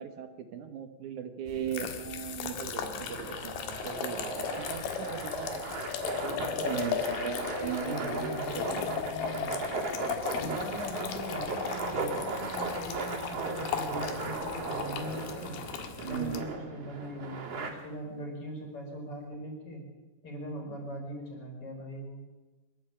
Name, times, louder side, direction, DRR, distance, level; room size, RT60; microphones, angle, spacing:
voice 1, 0.0-5.6 6.2-8.9 10.4-10.6 16.0-16.5, right 8 dB, 65° right, 8 dB, 2.1 m, -38 dB
sound 1, 1.5-16.4, left 8 dB, 75° left, 3.4 m, -37 dB
sound 2, 3.0-17.7, right 4 dB, 40° right, 3.3 m, -37 dB
voice 2, 7.4-9.5 10.4-15.6 16.0-19.8 20.2-22.2, equal, 35° left, 0 dB, 5.9 m, -40 dB
24.5 x 12.5 x 8.7 m, 1.2 s
omnidirectional pair, 4.6 m